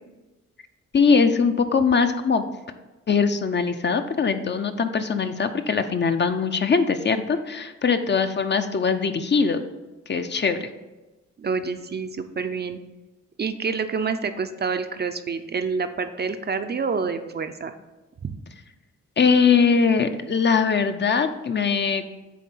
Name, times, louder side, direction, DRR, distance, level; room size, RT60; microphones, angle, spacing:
voice 1, 0.9-2.4 3.1-9.6 10.1-10.7 19.2-22.1, left 5 dB, 40° left, 8 dB, 0.6 m, -21 dB
voice 2, 11.4-12.8 13.4-17.7 18.2-18.4, right 5 dB, 35° right, 8 dB, 0.5 m, -28 dB
8.5 x 3.3 x 5.4 m, 1.1 s
cardioid pair, 85°, 29 cm